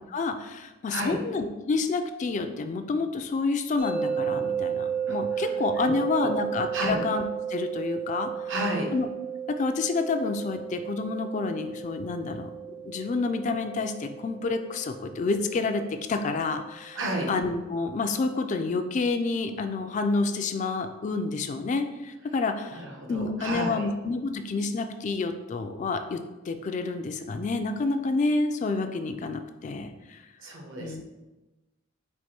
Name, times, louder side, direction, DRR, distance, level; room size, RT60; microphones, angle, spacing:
voice 1, 0.1-7.2 7.5-8.3 8.9-9.1 9.6-12.5 12.8-15.8 16.1-17.0 17.3-22.8 23.1-26.2 26.5-30.2 30.8-31.0, left 3 dB, 35° left, 7 dB, 0.3 m, -29 dB
sound 1, 3.8-16.8, right 7 dB, 85° right, 1.2 m, -34 dB
voice 2, 5.1-5.5 5.8-6.3 6.7-7.0 8.5-8.9 16.9-17.3 22.7-23.9 30.4-31.0, right 1 dB, 70° right, 0 dB, 0.9 m, -32 dB
4.5 x 2.5 x 4.3 m, 1.1 s
head